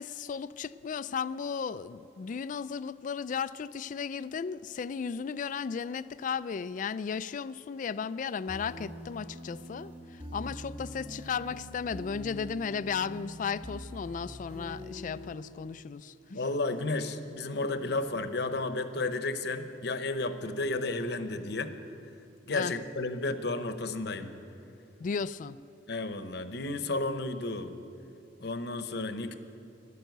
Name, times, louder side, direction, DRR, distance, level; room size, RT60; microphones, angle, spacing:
voice 1, 0.0-16.1 22.5-22.8 25.0-25.6, left 6 dB, 45° left, 16 dB, 0.3 m, -35 dB
sound 1, 8.5-15.3, equal, 30° right, 2.4 m, -44 dB
voice 2, 16.3-21.7 22.5-24.3 25.9-27.7 28.4-29.3, left 2 dB, 65° left, 9 dB, 0.9 m, -32 dB
14.0 x 11.5 x 7.9 m, 2.7 s
head